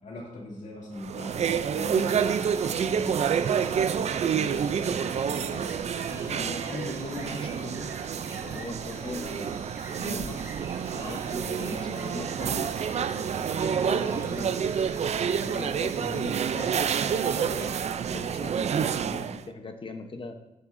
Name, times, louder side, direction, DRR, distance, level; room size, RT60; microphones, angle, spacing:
voice 1, 0.0-5.8 9.0-9.3 11.6-11.8 16.0-16.3 19.0-19.3, left 1 dB, 75° left, -3 dB, 2.4 m, -40 dB
sound 1, 1.0-19.4, right 7 dB, 60° right, 0.4 m, -28 dB
sound 2, 2.0-17.7, right 2 dB, 20° right, 1.2 m, -47 dB
voice 2, 6.1-8.0 8.3-9.6 10.0-10.5 10.9-14.8 15.4-17.8 18.1-19.0 19.3-20.4, left 3 dB, 45° left, 6 dB, 0.8 m, -40 dB
15.5 x 6.0 x 2.6 m, 0.95 s
wide cardioid pair, 120°, 13 cm